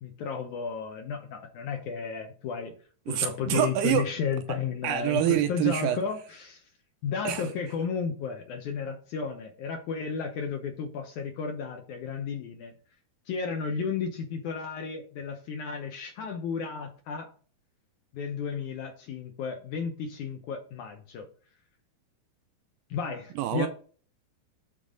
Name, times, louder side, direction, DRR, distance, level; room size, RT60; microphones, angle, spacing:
voice 1, 0.0-2.8 3.1-6.6 7.0-12.7 13.3-17.3 18.1-21.3 22.9-23.7, left 6 dB, 70° left, 1.9 m, -33 dB
voice 2, 3.1-4.1 4.8-6.0 7.2-7.5 23.4-23.7, right 12 dB, 80° right, 2.1 m, -26 dB
12.0 x 4.0 x 3.8 m
omnidirectional pair, 4.4 m